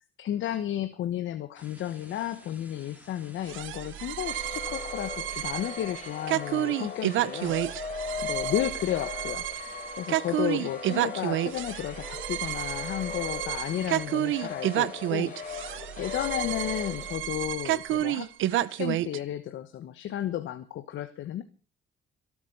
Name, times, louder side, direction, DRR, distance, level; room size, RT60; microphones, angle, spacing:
voice 1, 0.2-7.6 8.2-9.4 10.0-15.7 16.0-21.4, left 11 dB, 75° left, 10 dB, 1.2 m, -33 dB
sound 1, 1.6-17.2, right 1 dB, 10° right, 4.4 m, -54 dB
sound 2, 3.5-19.2, right 14 dB, 80° right, 0.7 m, -30 dB
sound 3, 4.2-17.2, left 6 dB, 40° left, 3.6 m, -39 dB
23.5 x 8.6 x 5.5 m, 0.37 s
cardioid pair, 90°, 20 cm